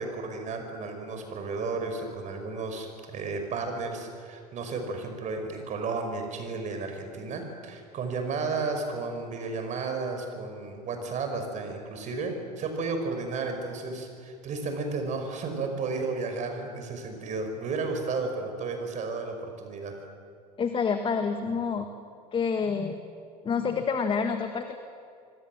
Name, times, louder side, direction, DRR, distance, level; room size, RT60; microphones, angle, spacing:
voice 1, 0.0-19.9, right 3 dB, 35° right, 5 dB, 6.0 m, -33 dB
voice 2, 20.6-21.9 22.3-23.0 23.4-24.8, left 5 dB, 25° left, 7 dB, 1.7 m, -28 dB
25.5 x 24.0 x 7.5 m, 2.4 s
figure-of-eight pair, 85°, 21 cm